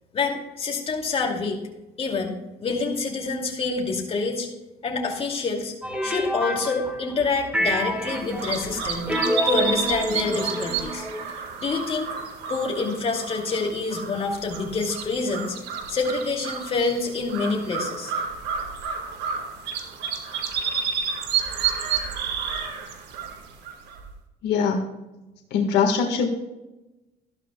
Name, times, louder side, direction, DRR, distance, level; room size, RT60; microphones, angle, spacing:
voice 1, 0.1-1.6 2.0-4.5 4.8-5.7 6.0-9.2 9.4-11.1 11.6-12.1 12.5-15.6 15.9-18.1, left 4 dB, 35° left, 1 dB, 2.5 m, -27 dB
sound 1, 5.8-7.2 7.5-11.3, equal, 5° right, 1.6 m, -28 dB
sound 2, 8.1-24.1, right 6 dB, 85° right, 1.7 m, -30 dB
voice 2, 24.4-25.0 25.5-26.3, left 6 dB, 85° left, 2 dB, 1.6 m, -22 dB
13.5 x 12.0 x 2.3 m, 1.0 s
cardioid pair, 110°, 17 cm